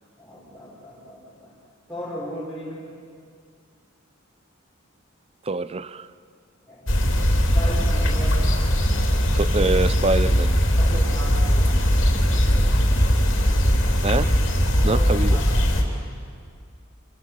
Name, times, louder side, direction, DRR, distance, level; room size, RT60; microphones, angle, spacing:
voice 1, 0.2-1.5 1.9-2.9 6.7-6.9 7.5-8.5 10.8-13.5 14.8-15.0 15.3-15.5, equal, ahead, -8 dB, 5.6 m, -37 dB
voice 2, 5.5-6.1 9.3-10.6 14.0-14.3 14.8-15.4, right 3 dB, 30° right, 16 dB, 0.6 m, -24 dB
sound 1, 6.9-15.8, equal, 60° left, 3.6 m, -20 dB
28.0 x 24.0 x 7.7 m, 2.1 s
head